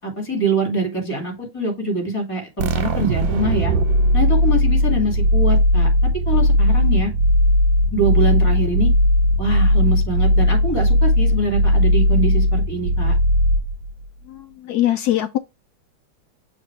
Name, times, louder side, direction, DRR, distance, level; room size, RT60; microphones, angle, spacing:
voice 1, 0.0-3.7 4.1-7.1 7.9-8.9 9.4-13.2, right 2 dB, 15° left, 2.3 m, -24 dB
sound 1, 2.6-14.1, equal, 75° right, 1.5 m, -17 dB
voice 2, 14.3-15.4, left 13 dB, 80° left, 0.8 m, -22 dB
7.2 x 3.3 x 4.6 m
omnidirectional pair, 2.2 m